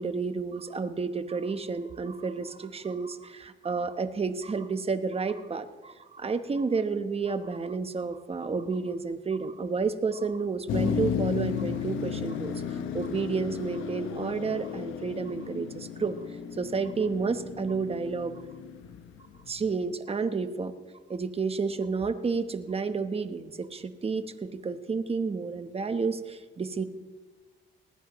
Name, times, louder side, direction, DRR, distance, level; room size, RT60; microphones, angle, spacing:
voice 1, 0.0-16.1 16.6-18.3 19.5-20.7 21.1-26.8, right 4 dB, 30° right, 9 dB, 1.0 m, -31 dB
Motor vehicle (road), 10.7-19.7, left 8 dB, 85° left, 1.0 m, -34 dB
20.0 x 13.5 x 3.1 m, 1.3 s
cardioid pair, 90°, 20 cm